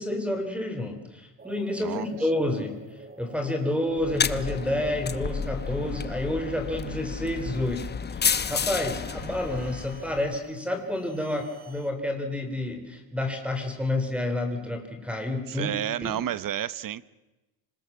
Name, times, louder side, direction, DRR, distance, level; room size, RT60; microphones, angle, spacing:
voice 1, 0.0-2.8 3.2-8.2 8.5-16.1, left 1 dB, 5° right, 6 dB, 3.6 m, -29 dB
sound 1, 1.4-11.9, right 2 dB, 20° right, 2.3 m, -48 dB
sound 2, 4.0-10.4, left 6 dB, 25° left, 0.8 m, -31 dB
voice 2, 15.5-17.0, right 11 dB, 45° right, 17 dB, 1.0 m, -31 dB
26.0 x 20.0 x 7.4 m, 1.1 s
cardioid pair, 130°, 44 cm